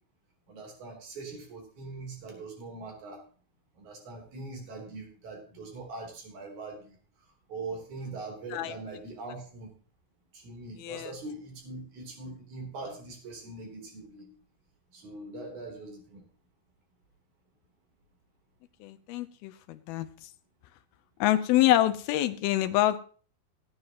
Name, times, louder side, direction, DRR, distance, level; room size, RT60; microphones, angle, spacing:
voice 1, 0.5-3.2 3.8-7.0 7.5-9.7 10.3-14.3 14.9-16.2, right 3 dB, 55° right, 1 dB, 4.7 m, -42 dB
voice 2, 10.8-11.1 18.8-20.1 21.2-23.0, left 14 dB, 85° left, 10 dB, 2.7 m, -26 dB
18.0 x 9.6 x 3.0 m, 0.40 s
omnidirectional pair, 4.3 m